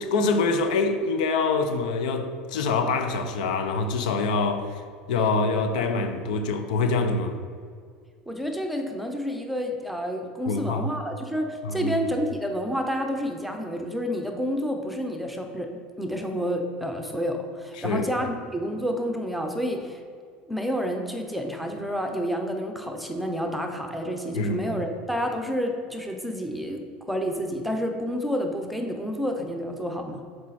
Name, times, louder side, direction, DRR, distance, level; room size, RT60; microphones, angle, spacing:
voice 1, 0.0-4.8 5.1-7.4 10.5-10.9 11.6-12.0 17.8-18.0 24.3-24.6, left 3 dB, 85° left, 0.8 m, -25 dB
voice 2, 8.3-15.7 16.0-20.0 20.5-30.2, equal, ahead, 0.9 m, -29 dB
7.2 x 4.9 x 4.3 m
supercardioid pair, 110°, 4 cm